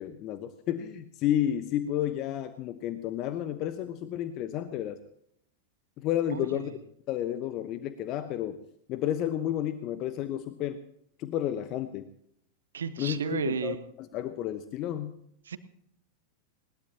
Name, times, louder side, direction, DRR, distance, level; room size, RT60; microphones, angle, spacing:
voice 1, 0.0-5.0 6.0-6.7 7.1-8.6 8.9-10.8 11.2-12.1 13.0-13.8 14.1-15.2, left 11 dB, 40° left, 11 dB, 1.0 m, -31 dB
voice 2, 6.3-6.7 12.7-13.8 15.5-15.6, right 7 dB, 65° right, 13 dB, 1.1 m, -33 dB
20.5 x 19.5 x 2.9 m, 0.71 s
figure-of-eight pair, 90°, 0 cm